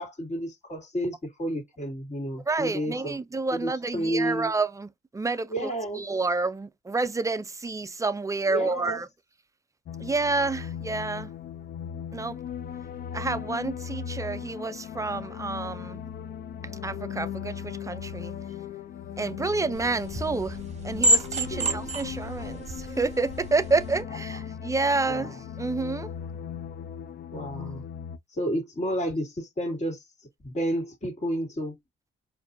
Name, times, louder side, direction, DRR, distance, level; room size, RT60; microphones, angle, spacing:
voice 1, 0.0-3.2 3.5-4.5 5.5-6.0 8.5-9.0 21.5-21.8 24.1-24.6 25.1-25.4 27.3-27.8 28.3-30.0 30.4-31.8, right 1 dB, 35° left, 2.2 m, -31 dB
voice 2, 2.5-4.9 5.1-5.7 6.0-9.1 10.0-11.3 12.1-12.3 13.1-16.0 16.8-18.3 19.2-20.6 20.8-26.1, right 3 dB, 15° right, 0.4 m, -29 dB
sound 1, 9.9-28.2, left 8 dB, 50° left, 0.4 m, -38 dB
sound 2, 19.7-24.0, right 2 dB, 35° right, 0.8 m, -29 dB
4.6 x 2.6 x 2.6 m
cardioid pair, 90°, 20 cm